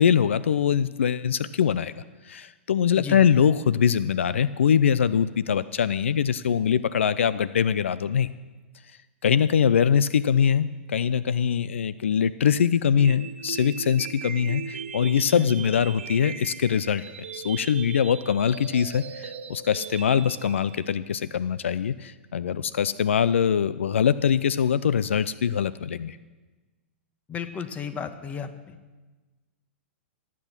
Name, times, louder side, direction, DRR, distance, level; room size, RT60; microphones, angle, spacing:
voice 1, 0.0-1.9 2.3-8.3 9.2-17.0 17.3-26.2, left 8 dB, 85° left, 16 dB, 0.5 m, -23 dB
sound 1, 13.0-21.0, right 7 dB, 80° right, 1.0 m, -38 dB
voice 2, 27.3-28.8, left 6 dB, 20° left, 10 dB, 1.3 m, -34 dB
18.0 x 8.5 x 7.3 m, 1.3 s
hypercardioid pair, 120°, 7 cm